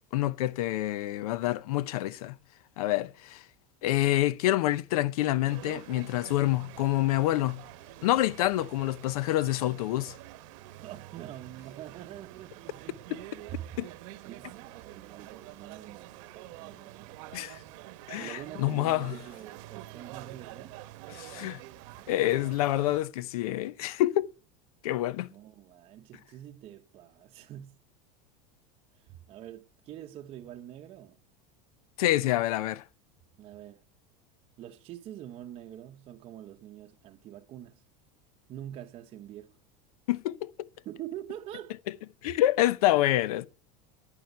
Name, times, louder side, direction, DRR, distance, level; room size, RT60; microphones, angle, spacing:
voice 1, 0.1-2.4 2.8-3.4 3.8-7.6 8.0-10.1 13.8-13.9 17.3-17.6 18.1-19.1 21.1-21.6 22.1-24.3 24.8-25.3 32.0-32.8 40.1-40.7 42.2-43.5, left 15 dB, 85° left, 0.7 m, -27 dB
sound 1, 5.4-23.0, right 16 dB, 60° right, 1.0 m, -47 dB
voice 2, 10.8-13.1 13.5-13.8 14.3-17.8 18.2-20.8 25.3-27.7 29.0-31.2 33.4-33.8 34.6-37.8 38.5-39.6 40.8-41.8 42.2-42.3, right 12 dB, 30° right, 0.8 m, -45 dB
11.0 x 9.1 x 9.3 m
supercardioid pair, 155°, 18 cm